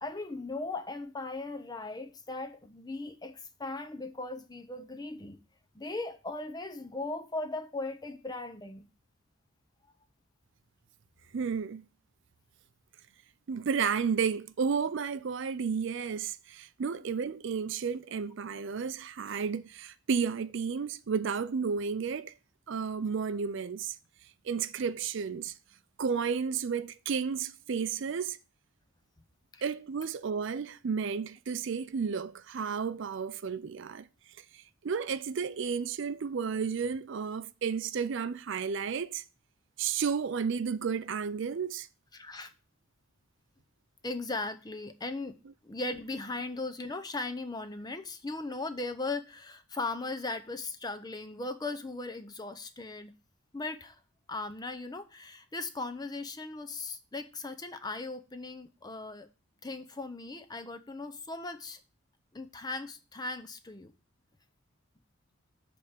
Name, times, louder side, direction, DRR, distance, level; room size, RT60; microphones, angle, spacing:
voice 1, 0.0-5.4 5.7-8.9 29.5-29.7 42.1-42.5 44.0-45.4 45.6-53.1 53.5-54.0 54.3-59.3 59.6-61.8 62.3-63.9, left 2 dB, 20° left, 0.5 m, -38 dB
voice 2, 11.3-11.8 13.5-22.3 22.7-24.0 24.4-25.5 26.0-28.4 29.6-34.1 34.5-39.2 39.8-41.9, right 6 dB, 55° right, 0.4 m, -32 dB
8.2 x 3.5 x 6.5 m
head